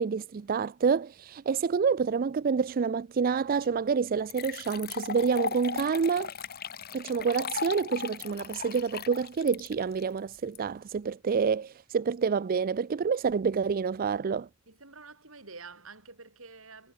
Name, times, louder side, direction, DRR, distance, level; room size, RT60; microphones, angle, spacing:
voice 1, 0.0-6.3 6.9-14.5, right 5 dB, 45° right, 0.4 m, -28 dB
sound 1, 3.6-3.7 4.3-10.6, left 6 dB, 50° left, 1.8 m, -37 dB
voice 2, 14.7-16.9, right 4 dB, 75° right, 6.8 m, -48 dB
head